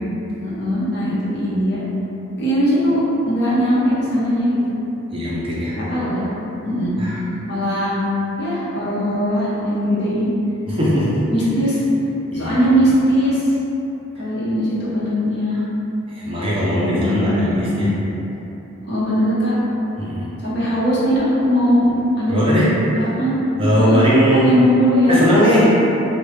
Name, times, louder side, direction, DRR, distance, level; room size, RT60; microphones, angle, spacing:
voice 1, 0.4-1.8 2.4-4.6 5.7-6.3 6.6-6.9 7.5-8.0 8.4-10.3 11.3-11.8 12.3-13.5 14.2-15.6 16.6-17.7 18.8-19.6 20.4-23.4 23.7-24.0 24.3-25.2, equal, 50° left, -9 dB, 0.8 m, -20 dB
voice 2, 5.1-5.8 7.0-7.2 10.7-11.3 12.3-12.6 16.1-18.0 20.0-20.3 22.3-22.9 23.6-24.5 25.1-25.7, equal, 25° right, -8 dB, 0.5 m, -19 dB
3.0 x 2.2 x 3.1 m, 3.0 s
head